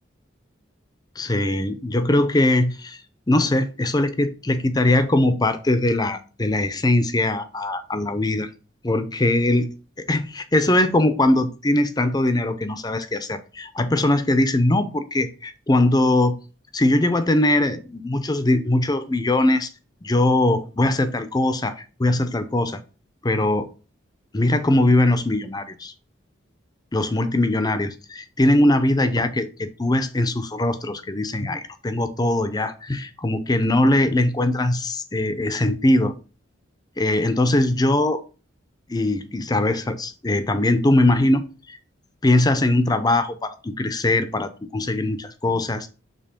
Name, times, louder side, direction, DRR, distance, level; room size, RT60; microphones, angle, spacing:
voice 1, 1.2-3.0 3.3-8.5 8.8-9.7 10.0-16.4 16.7-19.7 20.0-22.8 23.2-23.7 24.3-25.9 26.9-36.1 37.0-38.2 38.9-41.8 42.2-45.9, left 1 dB, 20° left, 11 dB, 0.6 m, -21 dB
6.7 x 3.2 x 5.1 m, 0.35 s
head